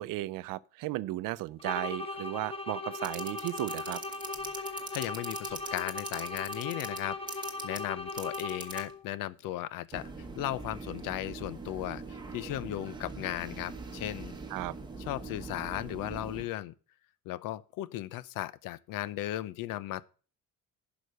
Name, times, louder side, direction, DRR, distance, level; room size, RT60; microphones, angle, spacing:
voice 1, 0.0-4.0 14.5-14.8, right 17 dB, 75° right, 0.6 m, -35 dB
sound 1, 1.6-9.1, left 2 dB, 15° left, 0.8 m, -38 dB
sound 2, 3.0-8.9 9.9-16.5, right 4 dB, 15° right, 1.1 m, -42 dB
voice 2, 4.6-14.3 15.1-16.7 17.3-20.0, left 14 dB, 80° left, 0.6 m, -36 dB
11.0 x 5.1 x 6.4 m
cardioid pair, 160°, 33 cm